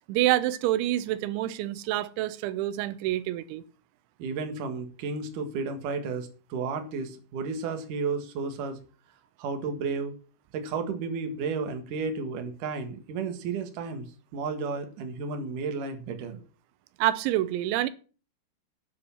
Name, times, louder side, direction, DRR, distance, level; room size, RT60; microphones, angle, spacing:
voice 1, 0.1-3.6 17.0-17.9, right 14 dB, 90° right, 3.2 m, -27 dB
voice 2, 4.2-8.8 9.4-10.1 10.5-14.1 14.3-16.4, right 4 dB, 55° right, 2.7 m, -32 dB
9.9 x 7.8 x 7.2 m
omnidirectional pair, 5.2 m